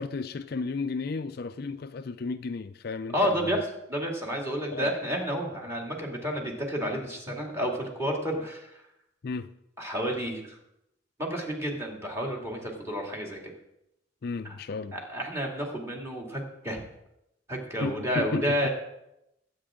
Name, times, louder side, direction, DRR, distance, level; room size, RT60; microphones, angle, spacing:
voice 1, 0.0-3.1 3.4-3.6 4.7-4.9 9.2-9.5 14.2-14.9 17.8-18.5, left 4 dB, 50° left, 10 dB, 0.4 m, -33 dB
voice 2, 3.1-8.8 9.8-10.6 11.2-13.5 14.4-14.6 14.9-16.8 17.5-18.7, equal, 15° right, 0 dB, 2.4 m, -30 dB
21.5 x 8.6 x 3.8 m, 0.85 s
head